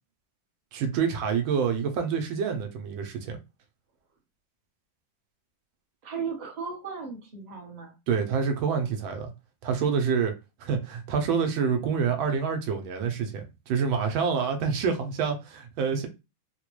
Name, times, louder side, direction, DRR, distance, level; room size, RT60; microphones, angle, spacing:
voice 1, 0.7-3.4 8.1-9.3 9.6-10.3 10.6-16.1, right 6 dB, 85° right, 1.5 m, -27 dB
voice 2, 6.0-8.0, right 5 dB, 35° right, 0.7 m, -36 dB
3.9 x 2.1 x 3.0 m
omnidirectional pair, 2.2 m